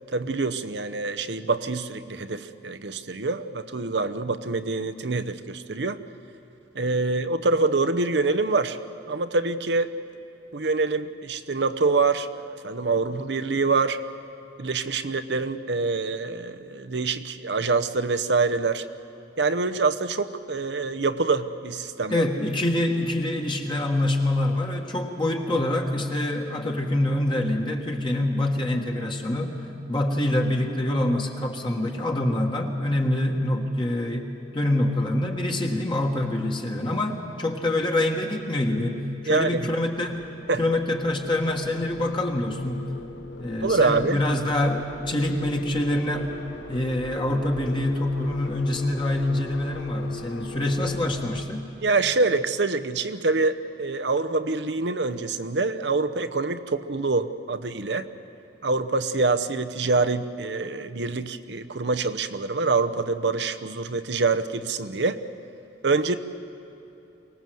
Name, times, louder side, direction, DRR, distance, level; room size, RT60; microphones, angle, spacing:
voice 1, 0.1-6.0 6.7-8.8 9.1-9.9 10.5-14.0 14.6-18.9 19.4-22.3 25.5-25.6 39.3-39.7 40.5-40.6 43.6-44.2 51.8-58.1 58.6-65.2 65.8-66.1, right 3 dB, 70° right, 11 dB, 0.9 m, -25 dB
voice 2, 22.1-29.6 29.9-40.2 40.6-42.9 43.4-46.3 46.7-51.6, left 1 dB, 25° left, 1 dB, 1.6 m, -25 dB
sound 1, 38.2-51.4, left 3 dB, 80° left, 1.0 m, -41 dB
24.0 x 19.5 x 7.8 m, 2.9 s
head